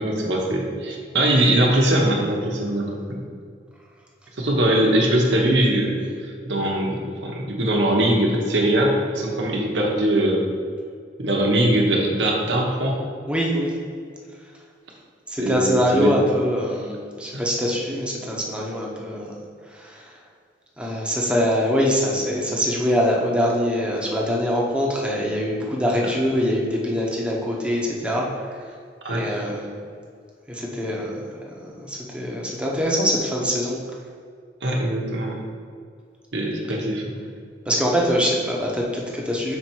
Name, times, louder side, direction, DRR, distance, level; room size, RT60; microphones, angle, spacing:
voice 1, 0.0-3.2 4.4-6.1 6.5-10.4 11.2-13.0 15.4-16.1 17.3-17.4 26.0-26.1 29.0-29.2 34.6-35.4 36.3-37.2, right 1 dB, 75° right, -1 dB, 1.0 m, -21 dB
voice 2, 13.3-13.7 15.3-19.3 19.7-20.1 20.8-28.6 29.1-29.7 30.5-33.8 37.7-39.6, equal, 5° right, -3 dB, 1.0 m, -23 dB
6.2 x 4.5 x 4.5 m, 2.2 s
head